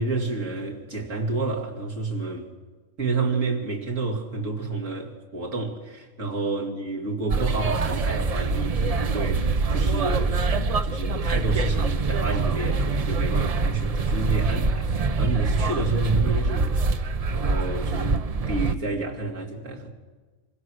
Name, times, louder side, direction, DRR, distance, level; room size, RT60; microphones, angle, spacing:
voice 1, 0.0-2.5 3.0-19.9, right 3 dB, 85° right, 3.1 m, -30 dB
sound 1, 7.3-18.7, right 3 dB, 40° right, 0.6 m, -24 dB
26.0 x 16.0 x 6.5 m
omnidirectional pair, 1.3 m